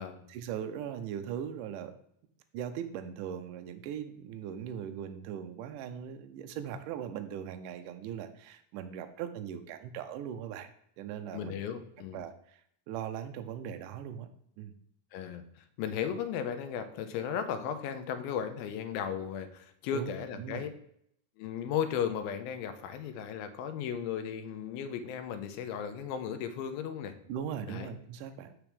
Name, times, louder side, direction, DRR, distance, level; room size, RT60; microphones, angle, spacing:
voice 1, 0.3-2.0 2.5-10.7 11.0-11.5 12.1-12.6 12.9-14.3 14.6-14.7 19.9-20.1 20.4-20.7 27.3-28.5, right 9 dB, 80° right, 7 dB, 2.0 m, -39 dB
voice 2, 11.3-12.3 15.1-20.7 21.4-27.2 27.7-27.9, left 8 dB, 90° left, 8 dB, 2.5 m, -35 dB
7.1 x 5.9 x 3.4 m, 0.69 s
omnidirectional pair, 4.2 m